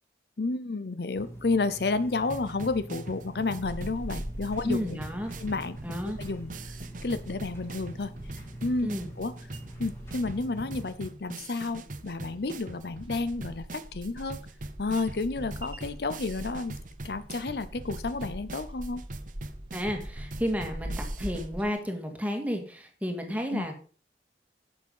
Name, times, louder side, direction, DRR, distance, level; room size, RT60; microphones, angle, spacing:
voice 1, 0.4-5.0 5.4-5.8 6.0-6.7 7.0-8.9 9.2-9.3 9.8-14.4 14.8-16.8 17.0-19.0 23.5-23.7, left 3 dB, 65° left, 13 dB, 0.6 m, -31 dB
sound 1, 1.1-10.9, right 1 dB, 15° left, 2.5 m, -44 dB
sound 2, 2.3-21.5, right 2 dB, 45° right, 0.9 m, -43 dB
sound 3, 3.6-21.7, equal, 30° right, 1.8 m, -43 dB
voice 2, 4.7-5.3 5.8-6.2 8.8-9.1 19.7-23.8, equal, 10° right, 4 dB, 2.0 m, -32 dB
11.0 x 7.1 x 5.5 m, 0.40 s
head